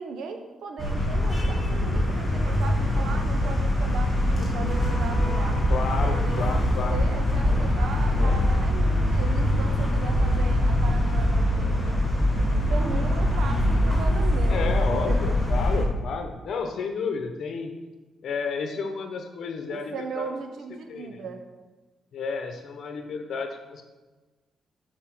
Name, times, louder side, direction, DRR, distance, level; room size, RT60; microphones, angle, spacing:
voice 1, 0.0-5.6 6.0-12.0 12.4-15.3 18.7-18.9 19.7-21.4, right 4 dB, 75° right, 5 dB, 0.9 m, -37 dB
sound 1, 0.8-15.8, left 1 dB, ahead, 1.9 m, -23 dB
voice 2, 5.7-7.0 8.1-8.4 14.5-17.7 18.2-20.3 20.9-21.2 22.1-23.8, left 5 dB, 65° left, 5 dB, 0.9 m, -32 dB
6.8 x 4.4 x 6.1 m, 1.2 s
cardioid pair, 110°, 0 cm